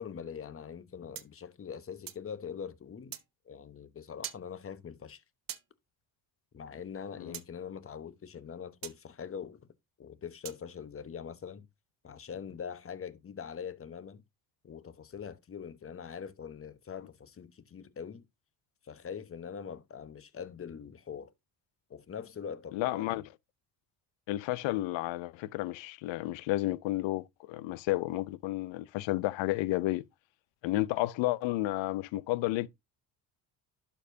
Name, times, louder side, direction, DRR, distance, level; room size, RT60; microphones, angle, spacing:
voice 1, 0.0-3.2 3.4-5.2 6.5-9.7 10.0-11.7 12.0-14.2 14.6-18.2 18.8-21.3 21.9-23.2, left 7 dB, 30° left, 1.0 m, -43 dB
sound 1, 1.1-2.3 3.1-3.3 4.2-4.4 5.5-5.7 7.3-7.5 8.8-9.0 10.4-10.6, right 11 dB, 50° right, 0.9 m, -42 dB
voice 2, 22.7-23.2 24.3-30.0 30.6-32.7, left 17 dB, 80° left, 0.6 m, -31 dB
11.5 x 4.6 x 2.7 m
cardioid pair, 95°, 44 cm